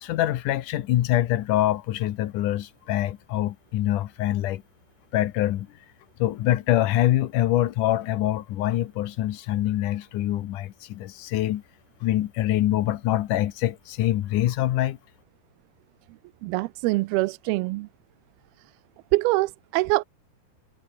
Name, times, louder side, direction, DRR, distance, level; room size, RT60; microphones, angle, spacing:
voice 1, 0.0-4.6 5.1-5.7 6.2-11.6 12.0-15.0, left 14 dB, 65° left, 2.4 m, -24 dB
voice 2, 16.4-17.9 19.1-20.0, right 21 dB, 90° right, 2.5 m, -24 dB
omnidirectional pair, 4.4 m